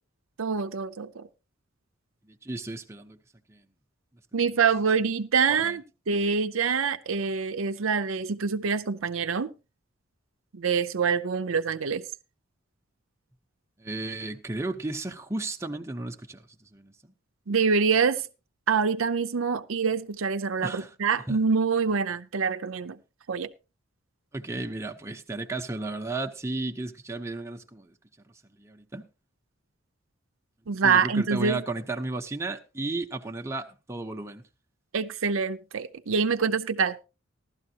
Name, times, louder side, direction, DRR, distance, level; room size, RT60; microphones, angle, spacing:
voice 1, 0.4-1.3 4.3-9.5 10.5-12.0 17.5-18.3 18.7-23.0 23.3-23.5 30.7-31.6 34.9-37.0, right 5 dB, 80° right, 0.6 m, -25 dB
voice 2, 2.3-3.2 3.5-3.6 5.6-5.7 13.8-16.4 16.7-17.1 20.6-20.9 21.3-21.4 24.3-27.9 28.6-29.0 30.8-34.4, right 2 dB, 15° right, 0.8 m, -34 dB
15.0 x 12.5 x 2.8 m
head